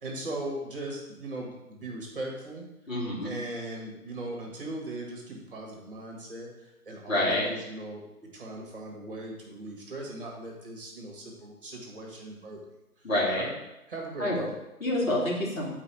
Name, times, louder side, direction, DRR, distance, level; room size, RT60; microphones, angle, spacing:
voice 1, 0.0-2.6 3.2-12.6 13.0-13.5 13.9-14.5, right 1 dB, 35° right, -1 dB, 1.8 m, -39 dB
voice 2, 2.9-3.3 7.1-7.4 13.0-13.5 14.2-14.5 14.8-15.7, left 1 dB, 60° left, -4 dB, 3.2 m, -27 dB
9.8 x 4.7 x 4.5 m, 0.93 s
figure-of-eight pair, 150°, 45 cm